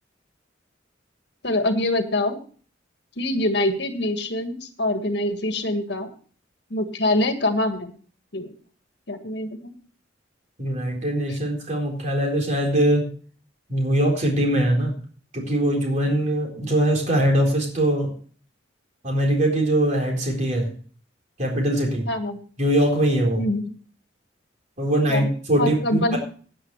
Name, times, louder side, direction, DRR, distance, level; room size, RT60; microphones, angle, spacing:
voice 1, 1.4-2.4 3.2-6.1 6.7-7.9 8.3-8.5 9.1-9.8 22.1-22.4 23.4-23.7 25.1-25.3 25.6-26.2, left 1 dB, 65° left, 7 dB, 1.7 m, -24 dB
voice 2, 10.6-13.1 13.7-14.9 15.3-18.1 19.0-20.7 21.4-22.1 22.6-23.4 24.8-26.2, right 1 dB, 40° right, 1 dB, 4.0 m, -22 dB
16.0 x 9.8 x 3.2 m, 0.42 s
head